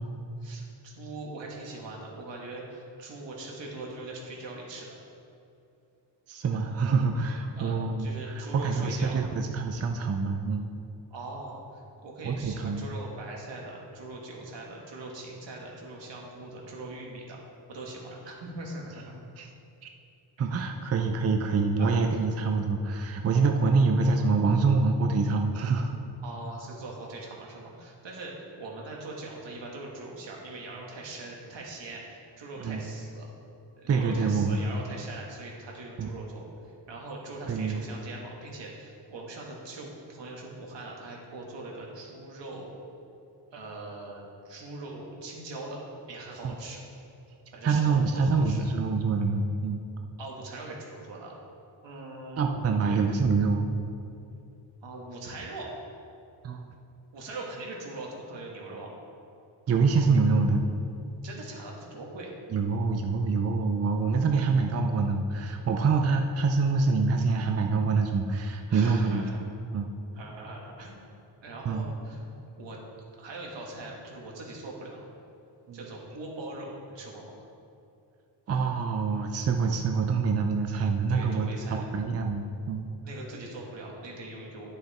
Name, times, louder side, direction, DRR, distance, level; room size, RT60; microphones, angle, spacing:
voice 1, 0.4-5.0 7.6-9.2 11.1-17.4 17.7-19.2 20.4-20.5 21.8-22.0 26.2-33.3 33.8-42.7 43.5-45.8 46.1-46.8 47.5-48.6 50.2-51.3 51.8-53.0 54.8-55.8 57.1-58.9 61.2-62.3 65.8-66.2 68.7-69.5 70.1-71.0 71.4-72.2 72.6-72.8 73.2-75.1 75.7-77.3 81.1-81.8 83.0-84.7, right 2 dB, 80° right, -2 dB, 1.9 m, -41 dB
voice 2, 6.3-10.7 12.2-12.9 19.4-19.5 19.8-19.9 20.4-26.0 32.6-32.8 33.9-34.6 36.0-36.1 37.5-37.8 46.4-46.5 47.6-49.8 52.4-53.6 56.4-56.7 59.7-60.6 62.5-69.9 71.7-71.9 75.7-75.8 78.5-82.8, right 4 dB, 35° right, 4 dB, 0.5 m, -26 dB
10.5 x 6.6 x 4.3 m, 2.7 s
wide cardioid pair, 150°, 43 cm